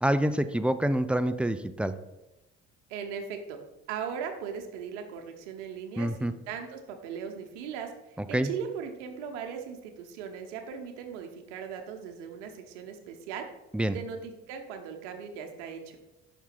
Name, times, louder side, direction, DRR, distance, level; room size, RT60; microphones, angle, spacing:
voice 1, 0.0-1.9 6.0-6.3 8.3-8.5 13.7-14.0, right 1 dB, 5° right, 11 dB, 0.3 m, -26 dB
voice 2, 2.9-3.6 3.9-13.5 13.8-16.0, right 7 dB, 80° right, 4 dB, 0.9 m, -38 dB
5.9 x 3.6 x 5.7 m, 1.0 s
hypercardioid pair, 50°, 36 cm